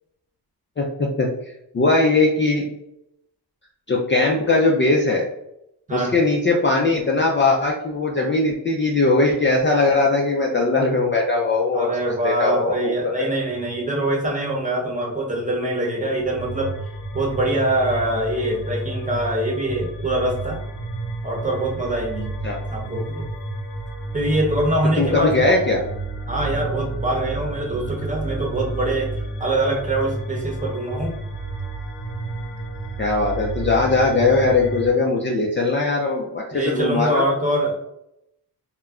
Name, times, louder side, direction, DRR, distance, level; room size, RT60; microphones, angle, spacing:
voice 1, 0.8-1.3 1.7-2.7 3.9-5.2 5.9-13.3 22.4-22.6 25.0-25.8 33.0-37.2, left 3 dB, 30° left, -2 dB, 0.4 m, -20 dB
voice 2, 11.7-16.7 17.1-20.6 21.2-22.3 22.7-23.3 24.1-25.4 26.3-29.1 29.4-31.2 36.5-37.8, right 1 dB, 20° right, -2 dB, 0.9 m, -24 dB
sound 1, 16.2-34.9, right 2 dB, 90° left, 0.8 m, -31 dB
2.2 x 2.1 x 3.5 m, 0.80 s
cardioid pair, 85°, 41 cm